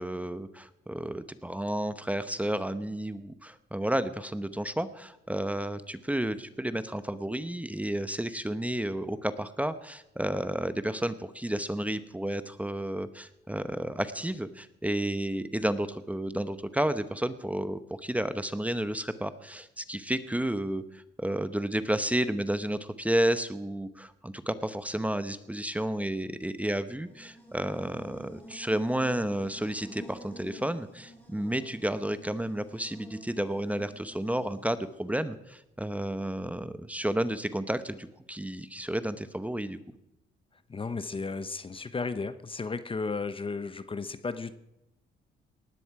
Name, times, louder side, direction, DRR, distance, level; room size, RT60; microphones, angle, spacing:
voice 1, 0.0-39.8, right 1 dB, 5° right, 12 dB, 0.9 m, -31 dB
Buzz, 26.9-35.0, equal, 10° left, 7.2 m, -50 dB
voice 2, 40.7-44.5, left 4 dB, 25° left, 12 dB, 0.8 m, -34 dB
19.0 x 13.0 x 4.8 m, 0.88 s
cardioid pair, 90°, 20 cm